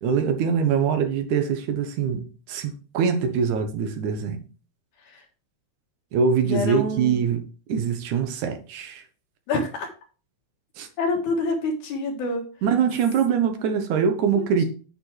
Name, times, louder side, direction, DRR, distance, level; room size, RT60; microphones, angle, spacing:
voice 1, 0.0-4.4 6.1-7.4 7.7-9.0 10.8-10.9 12.6-14.6, right 6 dB, 80° right, 2.6 m, -23 dB
voice 2, 6.4-7.2 9.5-9.9 11.0-12.5 14.3-14.4, left 2 dB, 80° left, 3.1 m, -26 dB
8.8 x 6.8 x 3.3 m
omnidirectional pair, 3.4 m